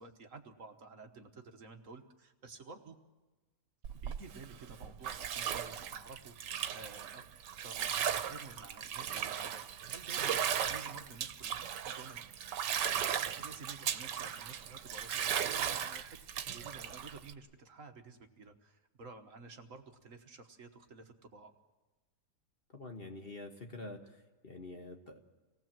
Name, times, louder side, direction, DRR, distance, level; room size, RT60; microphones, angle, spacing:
voice 1, 0.0-3.0 3.9-7.3 7.6-10.4 10.6-12.4 13.4-21.6, right 4 dB, 50° right, 6 dB, 1.5 m, -52 dB
Bathtub (filling or washing), 3.8-17.3, right 9 dB, 85° right, 1.5 m, -37 dB
voice 2, 22.7-25.2, left 2 dB, 35° left, 4 dB, 1.5 m, -47 dB
26.0 x 18.5 x 7.5 m, 1.2 s
omnidirectional pair, 1.8 m